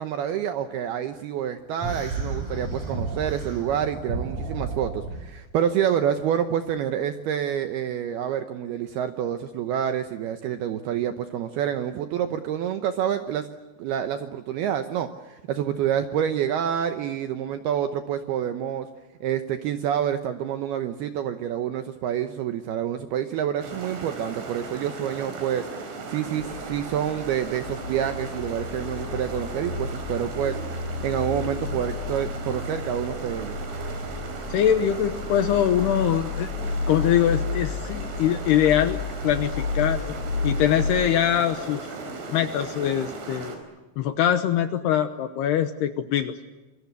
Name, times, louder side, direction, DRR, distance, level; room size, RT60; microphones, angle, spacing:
voice 1, 0.0-13.5 13.8-18.9 19.2-33.6, right 9 dB, 80° right, 8 dB, 2.2 m, -28 dB
sound 1, 1.8-5.2, right 3 dB, 30° right, 7.6 m, -32 dB
sound 2, 23.6-43.6, right 3 dB, 65° right, 6.9 m, -37 dB
sound 3, 26.4-41.1, left 4 dB, 50° left, 3.4 m, -32 dB
voice 2, 34.5-36.5 36.9-39.0 39.2-40.1 40.4-41.9 42.3-43.6 44.0-46.3, left 10 dB, 75° left, 9 dB, 2.5 m, -23 dB
26.5 x 23.5 x 8.3 m, 1.1 s
omnidirectional pair, 5.9 m